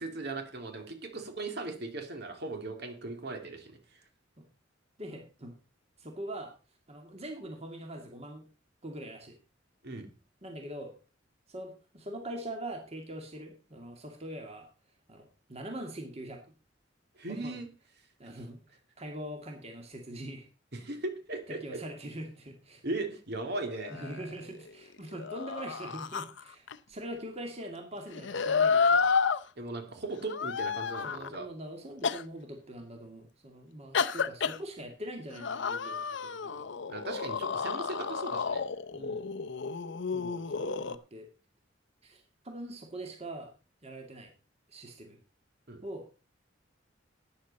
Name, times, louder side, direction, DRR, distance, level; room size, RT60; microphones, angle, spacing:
voice 1, 0.0-3.7 9.8-10.1 17.2-17.7 20.7-21.8 22.8-24.0 29.6-31.5 36.9-38.6 45.7-45.8, right 2 dB, 60° right, 4 dB, 2.6 m, -38 dB
voice 2, 5.0-5.5 6.0-6.5 6.9-8.5 8.8-9.4 10.4-10.9 11.5-14.7 15.1-16.4 17.3-17.6 18.2-20.5 21.5-22.8 23.9-29.1 31.0-36.7 38.9-39.2 40.1-41.3 42.0-43.5 43.8-44.3 44.7-45.2 45.8-46.0, right 1 dB, 35° right, 3 dB, 2.2 m, -43 dB
sound 1, 23.4-24.7 25.1-26.8 28.1-29.4 30.3-31.4 32.0-32.2 33.9-34.6 35.3-41.0, left 5 dB, 65° left, 0.7 m, -31 dB
13.0 x 9.8 x 4.2 m, 0.33 s
head